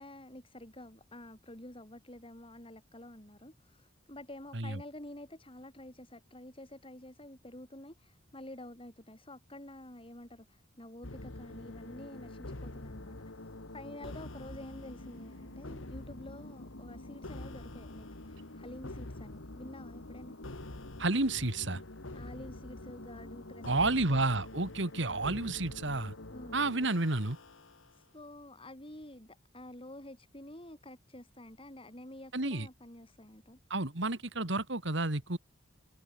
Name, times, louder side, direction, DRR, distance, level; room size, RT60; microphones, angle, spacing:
voice 1, 0.0-20.4 22.1-24.2 26.3-26.6 27.9-33.6, left 1 dB, 30° left, 6.0 m, -49 dB
sound 1, 11.0-27.9, left 2 dB, 90° left, 2.1 m, -46 dB
voice 2, 21.0-21.8 23.6-26.1 26.5-27.4 32.3-32.7 33.7-35.4, right 2 dB, 65° right, 2.5 m, -31 dB
head